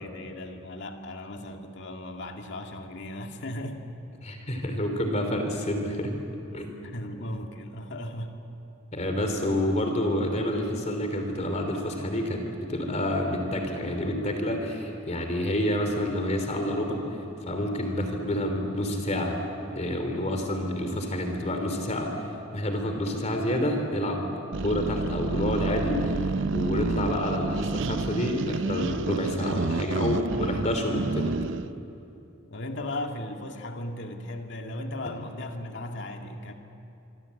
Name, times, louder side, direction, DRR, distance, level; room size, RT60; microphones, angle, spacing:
voice 1, 0.0-3.8 6.8-8.3 12.9-13.0 32.5-36.5, left 1 dB, 60° left, 3 dB, 2.2 m, -36 dB
voice 2, 4.2-6.1 6.5-6.7 8.9-12.4 12.7-17.0 17.4-19.4 19.7-24.2 24.6-31.4, left 1 dB, 35° left, 4 dB, 3.3 m, -28 dB
sound 1, 24.5-31.7, right 3 dB, 65° right, 0.6 m, -29 dB
25.5 x 25.5 x 8.4 m, 2.7 s
head